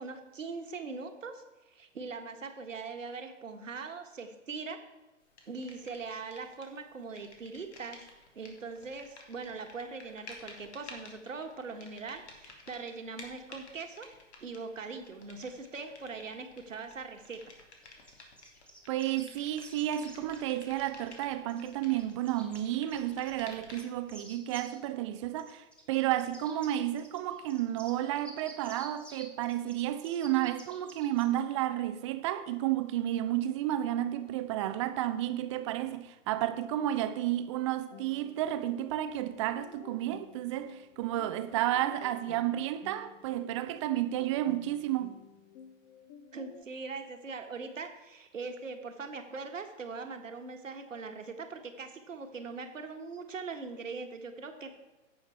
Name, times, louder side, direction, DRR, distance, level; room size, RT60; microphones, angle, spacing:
voice 1, 0.0-1.4 1.7-4.8 5.5-8.0 8.3-14.1 14.4-17.5 46.3-54.7, right 4 dB, 75° right, 1.5 m, -41 dB
sound 1, 5.4-6.8 7.0-24.1, left 3 dB, 60° left, 2.4 m, -53 dB
sound 2, 17.8-21.2 21.5-23.5 23.7-24.8 25.4-31.2, right 1 dB, 5° left, 1.4 m, -53 dB
voice 2, 18.9-45.2, right 13 dB, 25° right, 0.5 m, -32 dB
sound 3, 37.9-46.6, left 7 dB, 30° left, 0.8 m, -53 dB
15.5 x 5.8 x 4.4 m
figure-of-eight pair, 115°, 38 cm